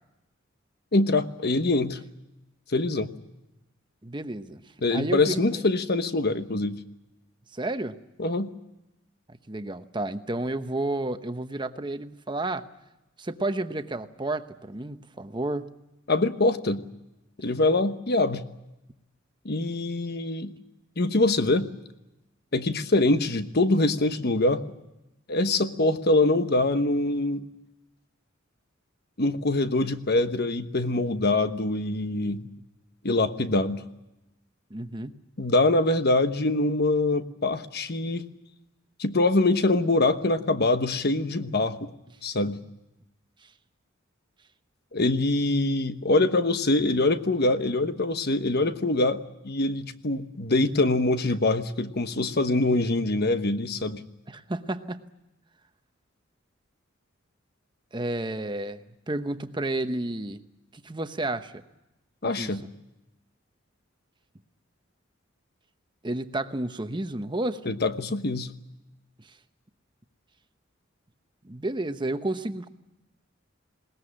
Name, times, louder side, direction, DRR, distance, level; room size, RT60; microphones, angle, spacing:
voice 1, 0.9-2.0 2.7-3.1 4.8-6.8 8.2-8.5 16.1-16.8 17.4-18.4 19.4-20.5 21.0-21.7 22.5-24.6 25.3-27.4 29.2-32.5 33.0-33.8 35.4-38.3 39.0-41.9 42.2-42.6 44.9-54.0 62.2-62.6 67.6-68.5, left 2 dB, 50° left, 10 dB, 1.2 m, -24 dB
voice 2, 4.0-4.6 4.9-5.6 7.5-8.0 9.5-12.7 13.2-15.7 34.7-35.2 54.3-55.0 57.9-60.4 60.8-61.6 62.2-62.5 66.0-67.7 71.4-72.7, right 2 dB, 25° right, 9 dB, 1.0 m, -31 dB
20.5 x 19.0 x 10.0 m, 0.94 s
head